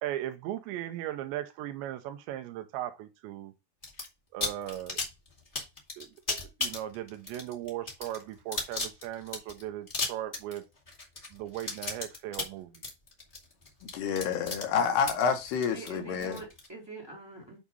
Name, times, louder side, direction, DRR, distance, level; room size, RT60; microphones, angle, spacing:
voice 1, 0.0-3.5 4.3-5.0 6.0-10.6 11.3-12.8, right 13 dB, 90° right, 3.1 m, -38 dB
sound 1, 3.8-4.1 4.4-16.7, left 3 dB, 25° left, 1.1 m, -35 dB
voice 2, 13.9-16.4, left 6 dB, 75° left, 3.0 m, -28 dB
voice 3, 15.6-17.6, right 3 dB, 10° right, 1.8 m, -45 dB
8.5 x 3.7 x 5.4 m
omnidirectional pair, 5.1 m